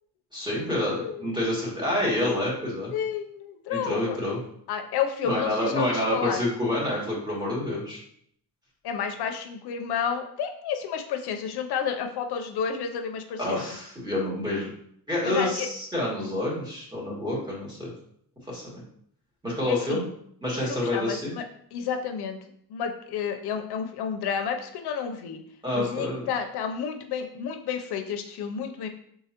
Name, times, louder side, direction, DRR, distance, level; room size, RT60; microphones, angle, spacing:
voice 1, 0.3-2.9 3.7-4.4 5.2-8.0 13.4-14.7 15.1-17.9 18.5-18.8 19.4-20.0 20.4-21.3 25.6-26.2, left 1 dB, 10° right, -5 dB, 1.7 m, -28 dB
voice 2, 0.9-1.3 2.9-4.2 4.7-6.4 8.8-13.6 15.2-15.7 19.7-20.0 20.6-21.4 21.7-22.4 22.7-25.4 25.7-28.9, left 7 dB, 80° left, 5 dB, 0.6 m, -31 dB
4.7 x 3.7 x 2.9 m, 0.67 s
cardioid pair, 120°, 38 cm